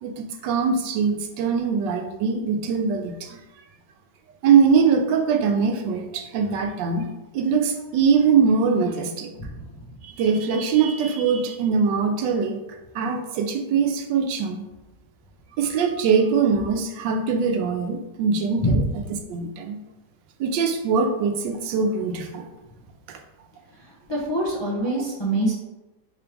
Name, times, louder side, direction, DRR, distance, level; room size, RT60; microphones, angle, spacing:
voice 1, 0.0-3.4 4.4-7.1 7.3-9.3 10.0-12.6 12.9-14.7 15.6-18.8 19.3-19.8 20.4-22.5 23.1-23.2 24.9-25.0, right 5 dB, 90° right, 5 dB, 1.3 m, -22 dB
voice 2, 24.1-25.5, right 1 dB, 35° left, -5 dB, 0.4 m, -24 dB
5.3 x 2.9 x 3.4 m, 1.0 s
omnidirectional pair, 1.9 m